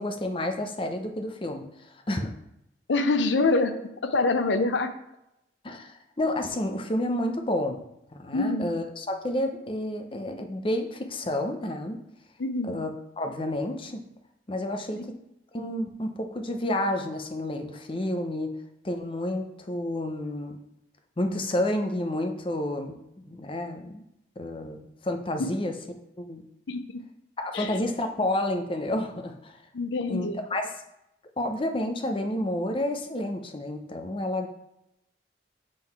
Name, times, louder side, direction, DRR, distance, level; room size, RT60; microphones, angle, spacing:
voice 1, 0.0-2.3 5.6-7.9 8.1-12.0 12.6-12.9 13.2-14.0 14.5-15.2 15.5-18.5 18.8-20.6 21.2-24.0 24.4-25.7 26.2-26.4 27.4-29.6 30.1-30.7 31.4-34.5, left 1 dB, 30° left, 5 dB, 0.6 m, -30 dB
voice 2, 2.9-3.8 4.0-4.9 8.3-8.7 12.4-12.8 25.4-25.5 26.7-27.0 27.5-27.8 29.7-30.4, left 3 dB, 75° left, 9 dB, 0.5 m, -25 dB
7.6 x 3.8 x 4.5 m, 0.84 s
head